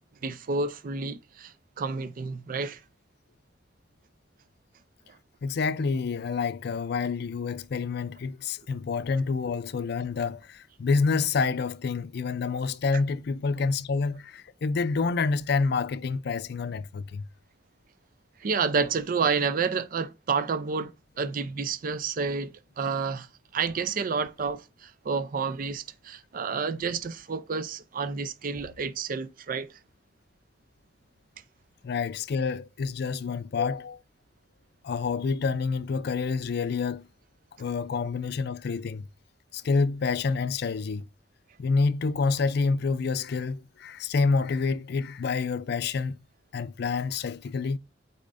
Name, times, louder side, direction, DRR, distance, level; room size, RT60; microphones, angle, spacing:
voice 1, 0.2-2.8 18.4-23.3 23.5-29.7, right 5 dB, 50° right, 0.5 m, -30 dB
voice 2, 5.4-17.3 31.8-34.0 34.8-37.1 37.6-39.1 39.5-41.0 41.6-46.1 46.5-47.8, left 4 dB, 60° left, 0.4 m, -28 dB
8.7 x 4.2 x 2.5 m
head